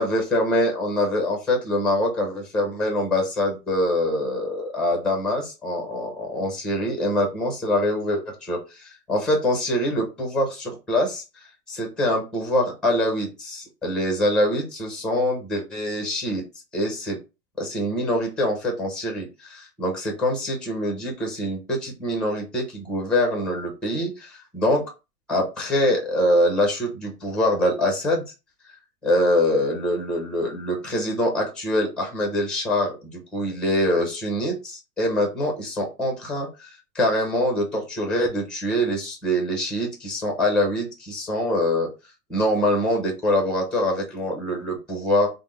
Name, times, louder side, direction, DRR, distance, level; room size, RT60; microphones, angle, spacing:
voice 1, 0.0-11.2 11.7-16.4 16.7-17.2 17.6-24.8 25.3-28.2 29.0-41.9 42.3-45.3, left 1 dB, ahead, 2 dB, 0.5 m, -24 dB
3.4 x 2.0 x 3.0 m, 0.28 s
hypercardioid pair, 120°, 49 cm